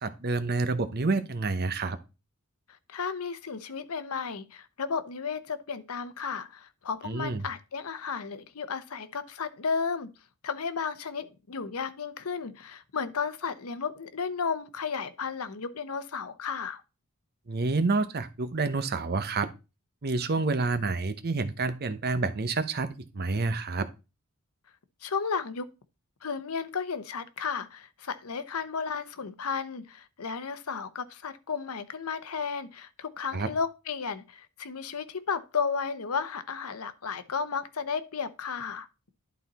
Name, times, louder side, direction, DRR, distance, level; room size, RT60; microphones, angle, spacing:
voice 1, 0.0-2.0 7.0-7.5 17.5-19.5 20.0-23.9 33.3-33.5, right 3 dB, 45° right, 0.8 m, -28 dB
voice 2, 2.9-10.1 10.4-16.8 25.0-25.7 26.2-38.9, left 5 dB, 80° left, 0.8 m, -33 dB
11.5 x 4.1 x 4.1 m
head